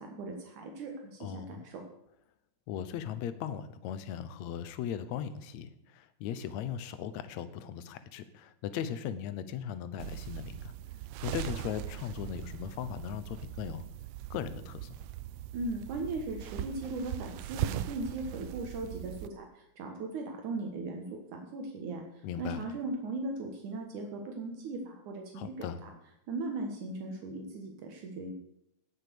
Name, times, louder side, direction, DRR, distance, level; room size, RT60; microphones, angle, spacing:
voice 1, 0.0-1.8 15.5-22.0 22.4-25.9 26.3-28.3, right 2 dB, 70° right, 2 dB, 2.8 m, -38 dB
voice 2, 1.2-1.7 2.7-10.7 11.2-13.8 14.3-14.9 22.2-22.6 25.4-25.8, left 9 dB, 70° left, 12 dB, 2.0 m, -38 dB
sound 1, 10.0-19.3, right 13 dB, 90° right, 1.5 m, -40 dB
17.0 x 6.5 x 6.9 m, 0.78 s
omnidirectional pair, 3.7 m